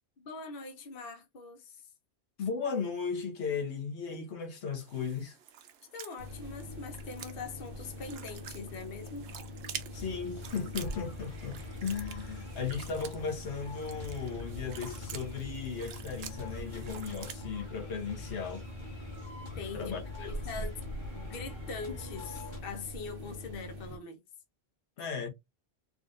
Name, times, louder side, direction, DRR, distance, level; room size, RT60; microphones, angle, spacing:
voice 1, 0.2-1.9 5.9-9.3 19.5-19.9 20.2-20.9 21.1-24.2, left 4 dB, 60° left, 1.0 m, -42 dB
voice 2, 2.4-5.4 9.9-18.7 19.7-20.3 25.0-25.3, left 5 dB, 85° left, 1.1 m, -36 dB
sound 1, 4.7-17.4, right 8 dB, 70° right, 0.8 m, -48 dB
sound 2, 6.2-24.0, left 1 dB, 45° right, 1.0 m, -44 dB
sound 3, 9.9-22.6, left 3 dB, 25° left, 1.1 m, -47 dB
3.6 x 2.5 x 2.4 m
omnidirectional pair, 1.1 m